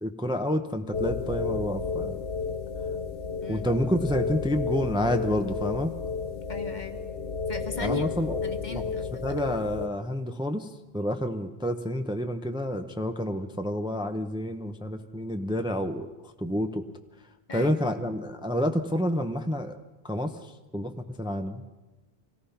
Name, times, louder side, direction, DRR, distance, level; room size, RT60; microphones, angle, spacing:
voice 1, 0.0-2.2 3.5-5.9 7.8-8.4 8.7-8.8 9.2-16.9 17.5-19.7 20.0-21.6, equal, 5° right, 6 dB, 0.8 m, -29 dB
sound 1, 0.9-9.9, left 5 dB, 85° left, 1.4 m, -32 dB
voice 2, 6.5-7.0 7.5-8.1 8.4-9.4 17.5-17.8, left 3 dB, 45° left, 7 dB, 1.4 m, -38 dB
25.0 x 18.0 x 5.8 m, 1.1 s
omnidirectional pair, 1.1 m